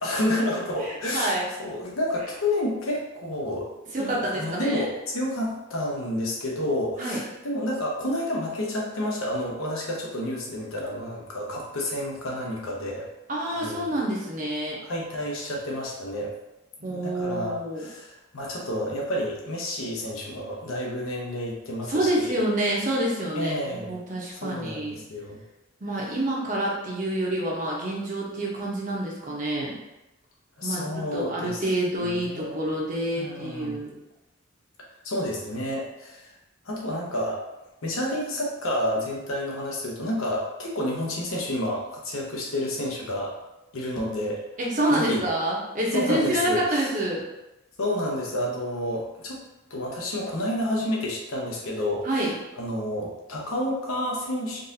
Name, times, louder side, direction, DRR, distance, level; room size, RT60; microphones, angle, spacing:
voice 1, 0.0-13.1 13.5-14.0 14.8-16.3 16.8-22.4 23.3-24.0 24.3-25.4 25.9-26.2 30.6-31.6 32.0-32.6 33.1-33.8 35.0-36.3 36.6-37.4 37.8-43.3 43.7-44.4 44.9-45.2 45.9-46.9 47.8-49.4 49.7-52.3 52.6-54.6, left 1 dB, 85° left, -2 dB, 0.8 m, -30 dB
voice 2, 0.8-1.5 3.9-4.8 7.0-7.2 13.3-14.8 16.8-17.8 21.9-25.0 25.8-29.7 30.6-30.8 31.1-33.9 44.6-47.2 52.0-52.3, right 1 dB, 35° right, -3 dB, 0.7 m, -27 dB
3.9 x 2.5 x 2.7 m, 0.94 s
head